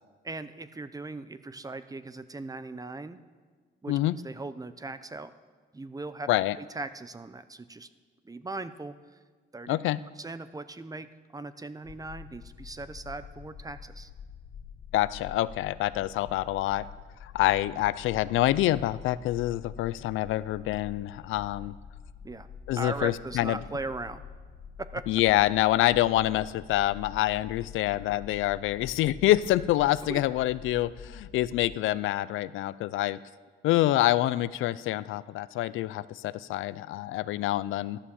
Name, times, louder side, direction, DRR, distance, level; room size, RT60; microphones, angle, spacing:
voice 1, 0.2-3.2 3.8-4.0 4.2-5.3 5.7-6.3 6.6-7.9 8.2-8.9 9.5-9.8 10.2-14.1 22.2-22.5 22.8-24.2 24.8-25.0 30.1-30.2, right 3 dB, 20° right, 13 dB, 0.7 m, -39 dB
voice 2, 9.7-10.0 14.9-16.9 17.2-21.7 22.7-23.6 25.1-33.2 33.6-38.0, left 15 dB, 85° left, 16 dB, 0.5 m, -26 dB
sound 1, 11.8-31.8, left 7 dB, 65° left, 2.0 m, -46 dB
14.0 x 11.5 x 7.1 m, 1.5 s
cardioid pair, 90°, 20 cm